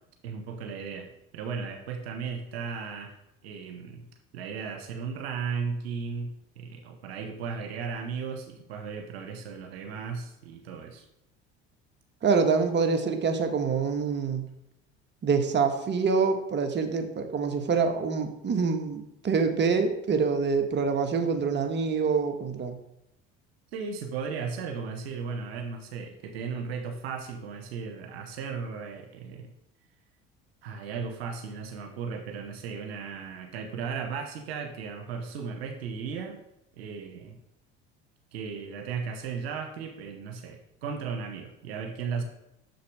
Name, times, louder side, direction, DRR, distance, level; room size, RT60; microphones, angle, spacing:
voice 1, 0.2-3.1 3.4-4.1 4.3-11.0 23.7-29.5 30.6-36.4 36.7-37.4 38.3-42.2, right 5 dB, 90° right, 5 dB, 1.0 m, -36 dB
voice 2, 12.2-14.5 15.2-22.8, right 5 dB, 35° right, 6 dB, 1.3 m, -26 dB
6.6 x 6.6 x 4.7 m, 0.83 s
hypercardioid pair, 75°, 30 cm